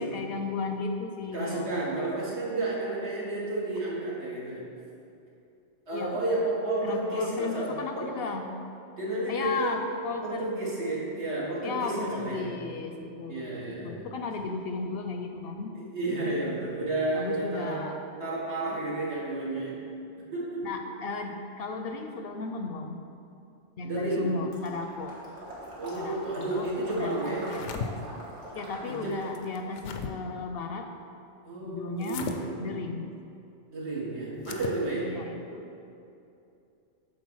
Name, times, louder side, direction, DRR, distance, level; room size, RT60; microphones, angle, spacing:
voice 1, 0.0-1.7 5.9-6.2 6.8-8.6 9.3-10.6 11.6-15.8 17.1-18.0 20.6-23.0 23.8-25.2 25.9-27.2 27.4-28.0 28.5-30.9 31.6-33.1 35.0-35.7, left 4 dB, 65° left, 5 dB, 0.7 m, -35 dB
voice 2, 1.3-4.6 5.9-8.1 9.0-9.8 10.2-12.5 13.2-14.0 15.8-17.8 18.2-19.8 20.3-20.7 23.8-24.3 25.8-27.4 28.8-29.2 31.4-32.6 33.7-35.1, right 2 dB, 70° right, -6 dB, 2.0 m, -31 dB
Water / Liquid, 24.5-29.4, right 1 dB, 90° right, 1.8 m, -43 dB
sound 1, 27.3-27.9 29.3-30.1 32.0-32.4 34.4-34.8, left 6 dB, 90° left, 0.9 m, -37 dB
8.7 x 3.9 x 6.2 m, 2.7 s
omnidirectional pair, 1.2 m